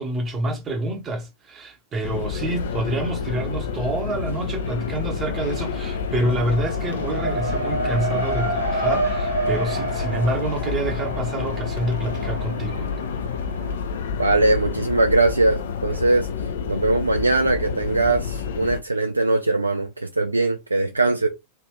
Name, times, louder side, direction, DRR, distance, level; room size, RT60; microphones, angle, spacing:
voice 1, 0.0-13.0, right 1 dB, 25° right, 0.9 m, -27 dB
sound 1, 2.0-18.8, left 6 dB, 60° left, 0.4 m, -29 dB
Race car auto racing, 2.6-3.3 3.6-15.0, right 2 dB, 90° left, 1.0 m, -30 dB
voice 2, 14.2-16.3 16.7-21.3, right 2 dB, 80° right, 0.4 m, -21 dB
3.4 x 2.5 x 3.1 m
figure-of-eight pair, 90°, 0 cm